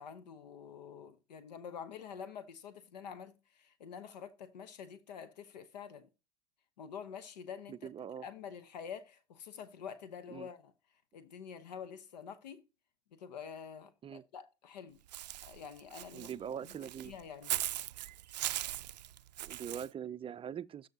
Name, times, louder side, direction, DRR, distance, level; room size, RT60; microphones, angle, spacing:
voice 1, 0.0-6.1 6.8-7.9 8.2-10.7 11.1-12.6 13.1-15.0 15.4-16.3 16.6-16.7 17.0-17.6, left 7 dB, 80° left, 1.0 m, -47 dB
voice 2, 7.7-8.3 10.3-10.5 14.0-14.2 16.1-17.1 19.4-20.9, right 8 dB, 25° right, 0.4 m, -42 dB
Walk footsteps / Bird, 15.1-19.9, right 14 dB, 85° right, 0.4 m, -39 dB
13.5 x 5.4 x 2.8 m
hypercardioid pair, 80°, 21 cm